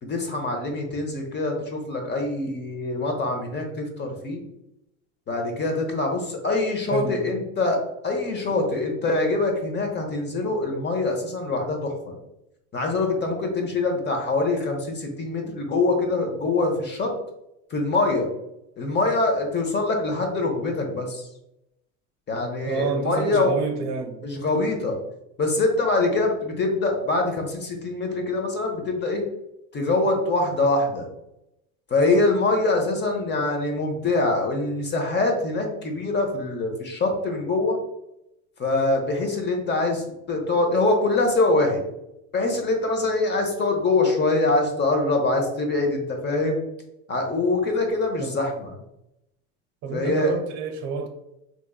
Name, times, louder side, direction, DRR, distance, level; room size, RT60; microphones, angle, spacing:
voice 1, 0.0-4.4 5.3-12.1 12.7-17.1 17.7-18.3 18.8-21.3 22.3-23.5 24.2-25.0 25.4-29.2 29.7-31.1 31.9-37.8 38.6-41.8 42.3-46.6 47.1-48.7 49.9-50.3, left 2 dB, 30° left, 0.9 m, -24 dB
voice 2, 6.9-7.4 22.7-24.2 48.2-48.3 49.8-51.1, right 5 dB, 50° right, 0.6 m, -28 dB
3.4 x 3.0 x 2.3 m
hypercardioid pair, 85°, 36 cm